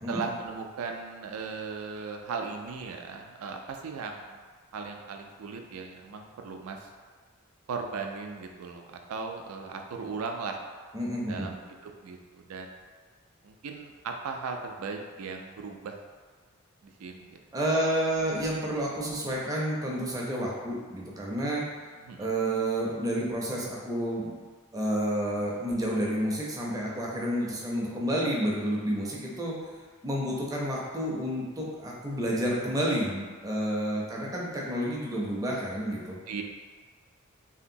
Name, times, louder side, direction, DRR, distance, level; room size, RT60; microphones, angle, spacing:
voice 1, 0.1-4.4 4.7-6.9 7.7-10.6 11.3-11.6 11.8-12.7 13.4-16.0 16.8-17.4 22.1-22.3 36.3-36.4, right 4 dB, 80° right, 3 dB, 0.4 m, -37 dB
voice 2, 10.9-11.5 17.5-21.6 22.2-24.4 24.7-29.5 30.0-36.2, right 1 dB, 15° right, -4 dB, 0.5 m, -30 dB
2.9 x 2.8 x 2.6 m, 1.5 s
head